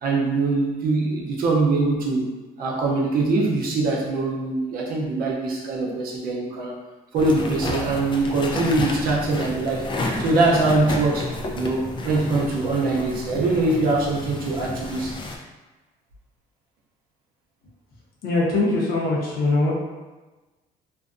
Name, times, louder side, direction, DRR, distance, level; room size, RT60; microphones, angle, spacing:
voice 1, 0.0-2.3 2.6-6.8 7.1-9.8 10.2-15.2, right 3 dB, 60° right, -2 dB, 0.6 m, -23 dB
sound 1, 7.2-15.4, left 2 dB, 30° left, 0.4 m, -31 dB
voice 2, 18.2-19.7, left 2 dB, 65° left, -4 dB, 0.8 m, -22 dB
2.5 x 2.2 x 2.5 m, 1.2 s
cardioid pair, 110°, 17 cm